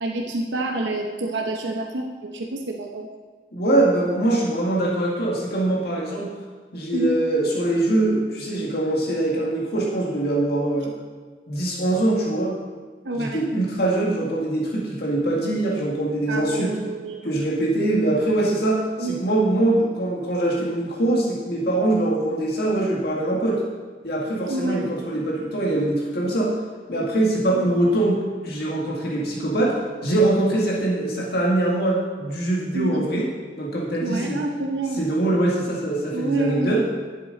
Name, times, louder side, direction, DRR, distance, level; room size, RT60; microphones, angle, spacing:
voice 1, 0.0-3.1 6.9-7.2 13.0-13.4 16.3-17.3 19.0-19.2 24.4-24.9 27.5-27.7 32.7-33.0 34.0-35.0 36.1-36.8, right 2 dB, 90° right, 1 dB, 0.8 m, -28 dB
voice 2, 3.5-6.3 6.7-10.9 11.5-12.5 13.1-16.7 17.2-23.6 24.0-26.6 26.9-29.8 30.0-33.3 33.6-34.4 35.0-36.8, right 1 dB, 60° left, -4 dB, 1.9 m, -23 dB
11.0 x 7.6 x 4.0 m, 1.5 s
head